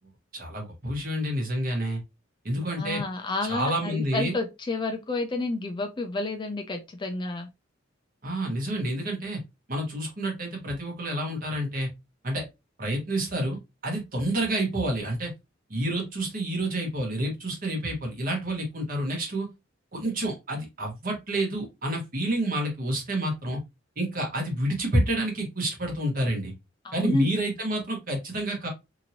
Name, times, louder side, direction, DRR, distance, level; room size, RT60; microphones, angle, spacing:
voice 1, 0.3-2.0 2.4-3.0 3.5-4.4 8.2-9.4 9.7-11.9 12.2-12.4 12.8-13.6 13.8-15.3 15.7-19.5 19.9-23.6 24.0-26.5 26.9-28.7, right 1 dB, 45° right, 1.2 m, -28 dB
voice 2, 2.8-7.5 26.8-27.3, left 2 dB, 25° left, 0.4 m, -30 dB
2.9 x 2.7 x 2.7 m
head